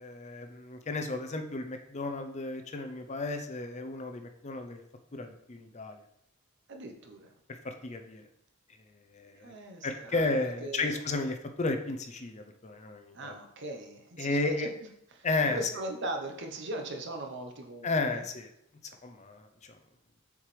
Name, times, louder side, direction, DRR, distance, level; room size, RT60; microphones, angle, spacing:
voice 1, 0.0-4.8 5.1-6.0 7.6-8.2 9.1-9.5 9.8-13.4 14.2-14.7 15.2-15.6 17.8-18.5 19.0-19.5, left 3 dB, 35° left, 6 dB, 0.6 m, -33 dB
voice 2, 6.7-7.3 9.3-11.0 13.1-18.2, right 1 dB, 60° right, 4 dB, 0.9 m, -39 dB
7.1 x 4.6 x 3.3 m, 0.74 s
head